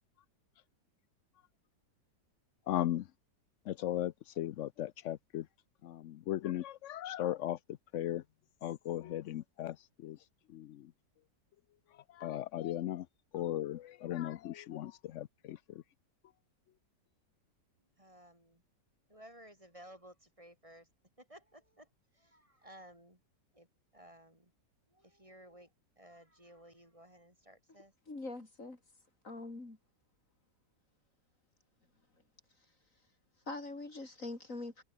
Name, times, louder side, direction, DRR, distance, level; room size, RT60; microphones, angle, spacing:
voice 1, 2.7-3.1 3.7-5.5 5.8-8.2 8.6-10.2 10.5-10.9 11.9-13.1 13.3-15.8, left 13 dB, 80° left, 0.6 m, -37 dB
voice 2, 18.0-18.6 19.1-20.9 21.2-21.9 22.1-23.2 23.5-23.7 23.9-24.5 24.9-25.7 26.0-27.9, right 1 dB, 15° right, 5.7 m, -56 dB
voice 3, 28.1-28.8 29.2-29.8 33.5-34.8, left 2 dB, 45° left, 4.3 m, -43 dB
omnidirectional pair, 1.9 m